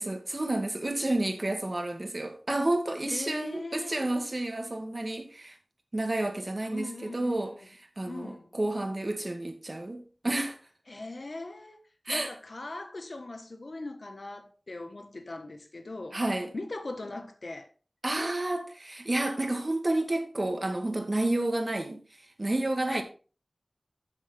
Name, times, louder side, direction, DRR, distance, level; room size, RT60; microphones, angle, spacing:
voice 1, 0.0-5.6 5.9-10.6 12.1-12.4 16.1-16.5 18.0-23.0, right 2 dB, 45° right, 2.2 m, -30 dB
voice 2, 3.0-4.1 6.7-7.6 8.1-8.4 10.9-11.8 12.1-16.2 16.5-17.7 22.9-23.0, left 2 dB, 70° left, 1.3 m, -40 dB
13.0 x 7.3 x 3.4 m
wide cardioid pair, 50°, 0 cm